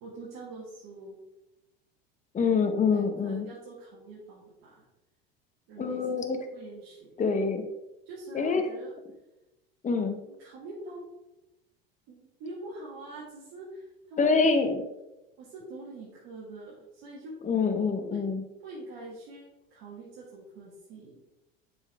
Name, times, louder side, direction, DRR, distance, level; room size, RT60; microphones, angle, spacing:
voice 1, 0.0-1.2 2.9-4.9 5.7-7.1 8.1-9.0 10.3-11.1 12.1-14.3 15.4-17.3 18.0-18.2 18.6-21.1, right 2 dB, 60° right, -5 dB, 1.7 m, -44 dB
voice 2, 2.3-3.5 5.8-6.4 7.2-7.6 8.3-8.6 9.8-10.2 14.2-14.8 17.4-18.4, left 5 dB, 25° left, 6 dB, 1.0 m, -25 dB
7.2 x 4.5 x 3.4 m, 0.96 s
hypercardioid pair, 85°, 30 cm